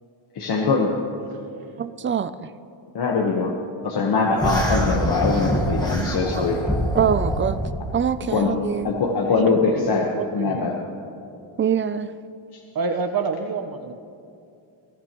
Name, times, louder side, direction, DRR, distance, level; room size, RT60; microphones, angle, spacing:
voice 1, 0.3-0.9 2.9-3.5 3.8-6.6 8.3-8.5 8.8-10.1 10.3-10.7 12.5-12.6, left 4 dB, 50° left, 0 dB, 1.3 m, -22 dB
voice 2, 1.8-2.5 6.0-6.4 6.9-7.6 7.9-8.9 11.6-12.1, right 8 dB, 25° right, 14 dB, 0.3 m, -24 dB
sound 1, 4.4-7.8, equal, 10° left, 1.4 m, -25 dB
voice 3, 8.6-9.9 10.1-10.7 12.7-13.9, right 4 dB, 45° right, 8 dB, 1.1 m, -29 dB
22.0 x 14.0 x 3.0 m, 2.5 s
cardioid pair, 120°, 50 cm